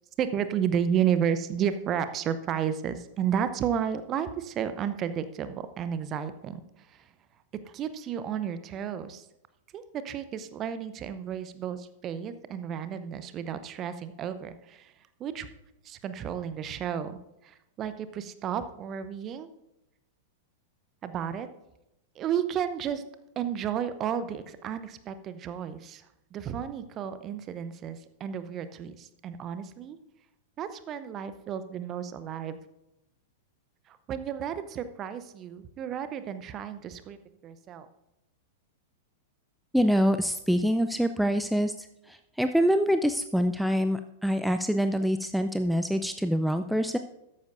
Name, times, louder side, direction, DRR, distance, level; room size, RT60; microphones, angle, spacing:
voice 1, 0.2-6.6 6.9-7.1 7.6-9.3 9.7-14.9 15.2-15.5 15.8-19.5 21.0-21.5 22.1-23.0 23.4-26.1 26.3-30.0 30.6-32.6 33.9-37.2 37.4-37.9, right 8 dB, 30° right, 12 dB, 0.7 m, -32 dB
voice 2, 39.7-47.0, equal, ahead, 8 dB, 0.4 m, -25 dB
13.5 x 9.4 x 2.6 m, 0.89 s
figure-of-eight pair, 95°, 0 cm